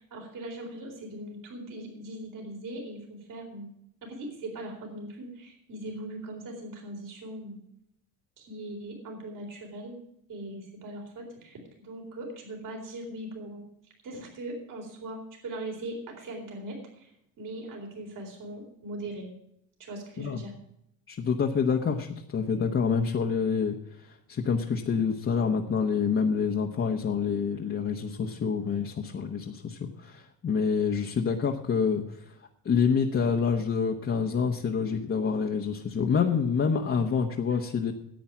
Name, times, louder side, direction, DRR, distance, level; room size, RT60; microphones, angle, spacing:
voice 1, 0.0-3.7 4.0-7.6 8.4-10.0 10.3-13.6 14.0-19.3 19.8-20.5 37.5-37.6, right 1 dB, 60° right, 1 dB, 4.1 m, -40 dB
voice 2, 21.1-32.3 32.6-37.9, left 6 dB, 35° left, 0 dB, 1.1 m, -27 dB
10.5 x 8.4 x 7.3 m, 0.76 s
cardioid pair, 110°, 35 cm